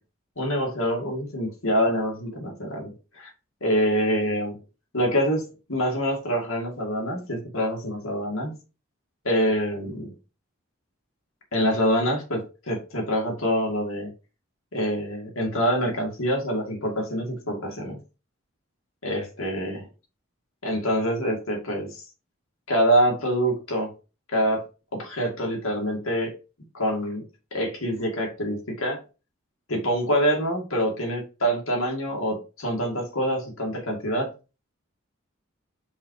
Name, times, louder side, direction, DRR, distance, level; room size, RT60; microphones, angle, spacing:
voice 1, 0.4-3.3 3.6-4.6 4.9-8.5 9.2-10.1 11.5-14.1 14.7-18.0 19.0-19.8 20.6-22.0 22.7-23.9 24.3-24.6 24.9-26.3 26.7-27.2 27.5-29.0 29.7-34.3, equal, 80° left, -1 dB, 2.3 m, -25 dB
5.6 x 4.4 x 4.8 m, 0.32 s
head